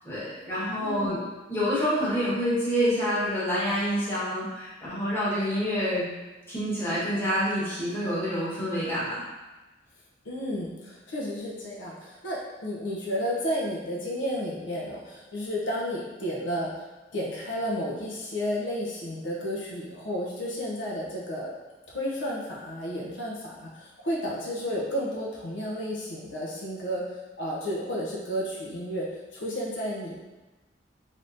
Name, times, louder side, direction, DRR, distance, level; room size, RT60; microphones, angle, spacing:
voice 1, 0.0-1.2 1.5-6.1 6.5-9.2, equal, 15° left, -10 dB, 1.2 m, -27 dB
voice 2, 0.7-1.2 3.1-3.2 10.2-16.7 17.1-21.5 21.9-27.0 27.4-29.1 29.3-30.2, equal, 80° left, -4 dB, 0.7 m, -32 dB
3.4 x 2.8 x 2.5 m, 1.1 s
head